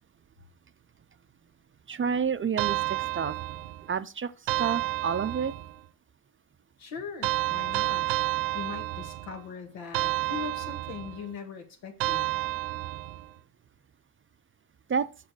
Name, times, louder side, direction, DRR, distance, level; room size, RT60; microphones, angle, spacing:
voice 1, 1.9-3.4 3.9-5.5 14.9-15.1, right 6 dB, 30° right, 0.5 m, -29 dB
sound 1, 2.6-3.9 4.5-5.8 7.2-9.4 9.9-11.2 12.0-13.3, right 17 dB, 85° right, 0.7 m, -30 dB
voice 2, 6.8-8.1 8.5-12.3, left 6 dB, 90° left, 1.9 m, -40 dB
6.4 x 6.1 x 4.7 m
cardioid pair, 80°, 45 cm